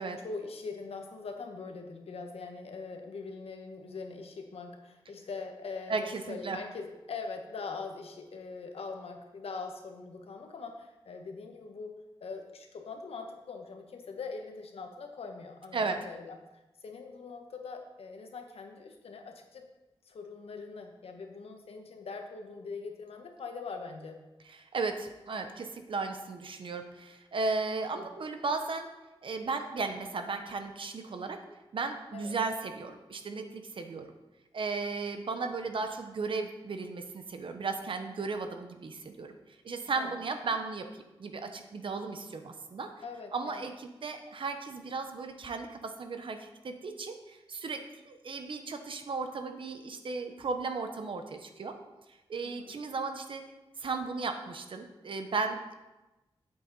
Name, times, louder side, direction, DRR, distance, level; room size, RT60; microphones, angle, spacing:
voice 1, 0.0-19.6 20.0-24.2 27.9-28.1 32.1-32.3 40.0-40.2 43.0-43.6 52.4-52.7, left 4 dB, 80° left, 4 dB, 1.2 m, -42 dB
voice 2, 5.9-6.6 15.7-16.0 24.6-28.9 29.2-31.4 31.7-34.1 34.5-39.3 39.6-42.9 43.3-51.7 52.3-53.4 53.8-55.7, right 4 dB, 60° right, 6 dB, 0.9 m, -35 dB
8.6 x 8.1 x 4.1 m, 1.0 s
wide cardioid pair, 140°, 10 cm